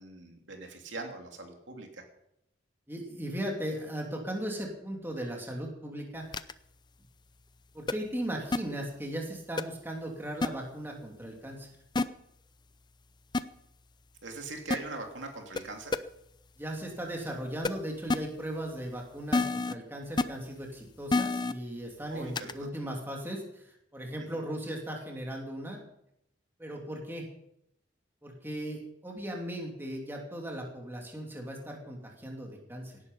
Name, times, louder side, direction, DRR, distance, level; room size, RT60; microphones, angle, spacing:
voice 1, 0.0-2.0 14.2-16.0 22.1-22.7 24.3-24.4, right 3 dB, 75° right, 2 dB, 2.9 m, -41 dB
voice 2, 2.9-6.2 7.7-11.7 16.6-25.8 26.6-27.3 28.2-33.0, right 1 dB, 10° right, 0 dB, 2.9 m, -37 dB
sound 1, 6.3-6.5 7.9-8.0 8.5-8.6 9.6-9.7 10.4-10.5 12.0-12.1 13.3-13.4 14.7-14.8 15.6-15.7 15.9-16.0 17.6-17.7 18.1-18.2 19.3-19.7 20.2-20.3 21.1-21.5 22.4-22.5, left 3 dB, 25° left, 0.5 m, -26 dB
17.5 x 11.0 x 5.5 m, 0.78 s
head